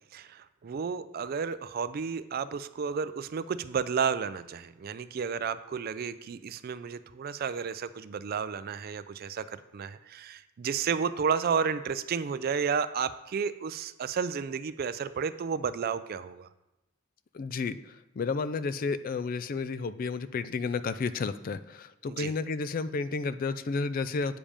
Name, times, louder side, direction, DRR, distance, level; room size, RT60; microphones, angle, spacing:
voice 1, 0.1-16.5 22.1-22.3, right 6 dB, 45° right, 14 dB, 0.3 m, -32 dB
voice 2, 17.3-24.4, left 4 dB, 45° left, 14 dB, 0.3 m, -32 dB
8.5 x 5.2 x 5.0 m, 0.97 s
head